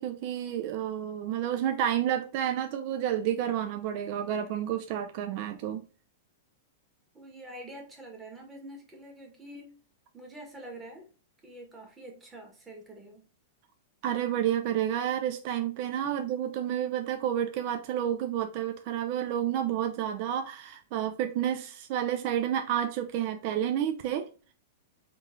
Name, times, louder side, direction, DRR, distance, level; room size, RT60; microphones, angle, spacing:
voice 1, 0.0-5.8 14.0-24.3, right 10 dB, 50° right, 0.4 m, -30 dB
voice 2, 7.1-9.8 10.1-11.1 11.4-13.2 16.0-16.1, right 1 dB, 15° right, 1.4 m, -46 dB
3.7 x 2.6 x 3.7 m
hypercardioid pair, 135°, 0 cm